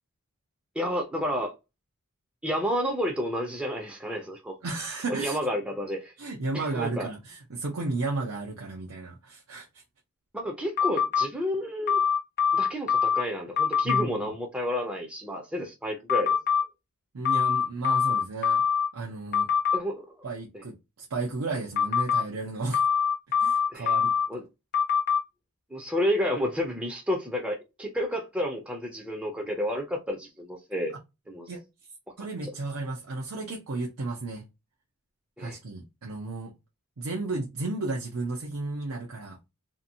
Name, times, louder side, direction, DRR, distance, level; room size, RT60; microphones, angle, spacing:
voice 1, 0.8-1.5 2.4-4.5 5.1-6.1 6.5-7.1 10.3-12.0 12.5-16.4 19.7-20.1 23.7-24.0 24.3-24.4 25.7-30.9 31.3-31.5 32.4-32.5 35.4-35.6, equal, 5° right, 0.5 m, -30 dB
voice 2, 4.6-5.4 6.2-9.8 13.8-14.3 17.1-18.6 18.9-19.5 20.2-22.8 23.4-24.1 31.5-31.6 32.2-34.4 35.4-36.5 37.0-39.4, right 3 dB, 75° right, 0.7 m, -33 dB
sound 1, 10.8-11.3 11.9-13.2 13.6-14.0 16.1-16.6 17.2-18.9 19.3-19.8 21.8-22.2 22.7-24.3 24.7-25.2, left 7 dB, 45° left, 0.6 m, -23 dB
2.8 x 2.6 x 2.6 m
head